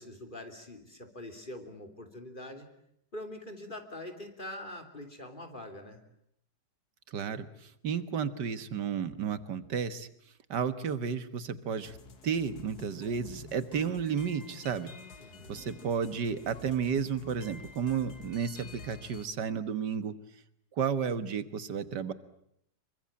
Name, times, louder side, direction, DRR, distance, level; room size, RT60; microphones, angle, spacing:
voice 1, 0.0-2.7 3.1-6.0 15.2-15.6, left 1 dB, 30° left, 5 dB, 3.3 m, -44 dB
voice 2, 7.1-10.1 10.5-12.0 12.2-14.9 15.5-20.2 20.7-22.1, right 7 dB, 75° right, 13 dB, 2.0 m, -32 dB
sound 1, 11.9-19.3, left 3 dB, 65° left, 2.5 m, -50 dB
27.5 x 24.0 x 8.7 m, 0.72 s
omnidirectional pair, 1.9 m